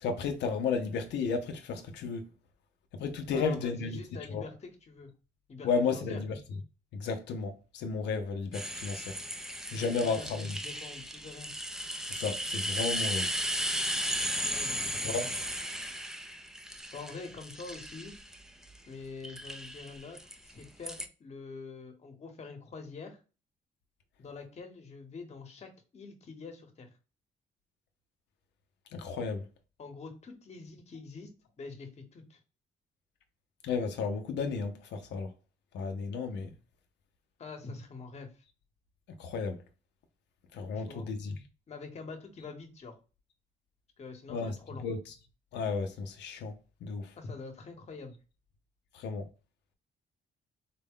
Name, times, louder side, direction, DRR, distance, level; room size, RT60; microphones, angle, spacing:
voice 1, 0.0-2.2 3.0-4.0 4.3-4.5 5.6-6.3 7.0-9.1 9.7-10.5 12.0-13.3 15.0-15.3 28.9-29.4 33.6-35.3 35.7-36.5 39.2-39.6 40.5-41.4 44.3-44.6 44.8-45.0 45.5-46.5 46.8-47.1 48.9-49.3, left 5 dB, 90° left, 0.6 m, -33 dB
voice 2, 3.3-5.1 5.5-6.2 9.7-10.3 10.5-11.5 14.4-15.3 16.9-18.1 18.9-23.2 24.2-26.9 29.8-31.3 31.6-32.4 37.4-38.3 40.7-41.1 41.7-42.9 44.0-44.9 47.2-48.2, left 4 dB, 40° left, 1.0 m, -45 dB
sound 1, 8.5-18.8 19.2-21.1, equal, 5° right, 0.4 m, -35 dB
4.1 x 2.1 x 3.5 m
cardioid pair, 125°, 17 cm